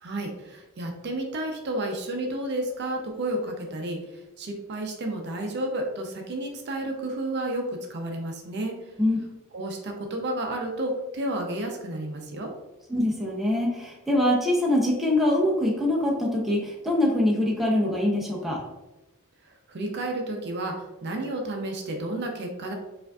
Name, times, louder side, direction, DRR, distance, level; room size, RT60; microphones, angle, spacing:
voice 1, 0.0-8.8 9.5-12.5 19.4-22.7, right 1 dB, 50° right, 2 dB, 0.5 m, -31 dB
voice 2, 12.9-18.6, left 1 dB, ahead, -3 dB, 0.5 m, -24 dB
4.7 x 2.5 x 2.3 m, 1.0 s
head